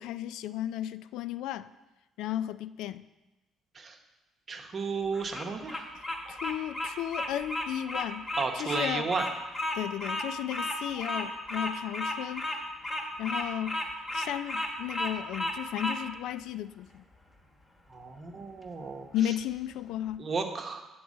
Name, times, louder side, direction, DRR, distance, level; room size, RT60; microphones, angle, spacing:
voice 1, 0.0-1.7 2.2-3.0 5.9-8.3 8.6-9.1 9.7-12.4 13.2-13.8 14.1-17.0 19.1-20.3, left 12 dB, 80° left, 14 dB, 0.3 m, -34 dB
voice 2, 4.5-5.9 8.4-9.3 17.9-19.1 20.2-20.8, right 4 dB, 30° right, 4 dB, 0.9 m, -33 dB
Bird vocalization bird call bird song, 5.1-16.0, left 1 dB, 20° left, 1.2 m, -33 dB
9.3 x 4.6 x 7.3 m, 1.1 s
cardioid pair, 170°, 0 cm